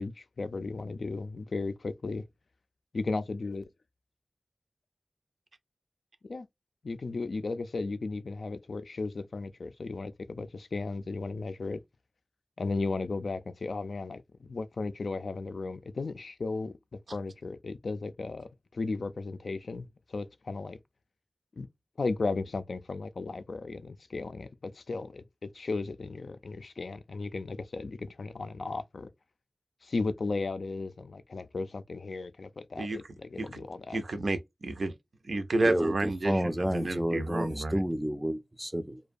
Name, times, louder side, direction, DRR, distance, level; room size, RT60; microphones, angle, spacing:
voice 1, 0.0-2.2 2.9-3.6 6.3-6.5 6.8-11.8 12.6-14.2 14.5-16.8 17.1-20.8 21.6-21.7 22.0-29.1 29.8-34.0, left 3 dB, 75° left, 0.3 m, -35 dB
voice 2, 33.9-34.9 35.3-37.8, right 2 dB, 70° right, 0.5 m, -31 dB
voice 3, 35.6-39.0, equal, 10° right, 0.3 m, -30 dB
2.4 x 2.2 x 2.5 m
wide cardioid pair, 85°, 0 cm